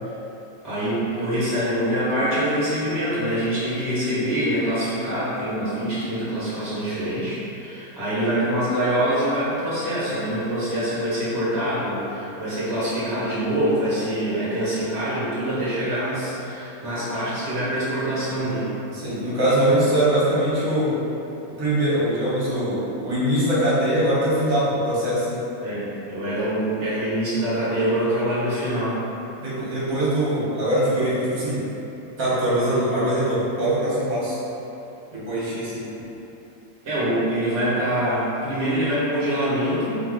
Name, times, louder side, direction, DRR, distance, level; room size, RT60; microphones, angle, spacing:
voice 1, 0.6-18.7 25.6-29.0 36.8-39.9, right 1 dB, 45° right, -12 dB, 1.6 m, -25 dB
voice 2, 18.9-20.9 21.6-25.4 29.4-31.6 32.2-34.4 35.1-35.9, right 1 dB, 70° right, -9 dB, 1.6 m, -22 dB
4.6 x 2.5 x 3.7 m, 3.0 s
omnidirectional pair, 1.5 m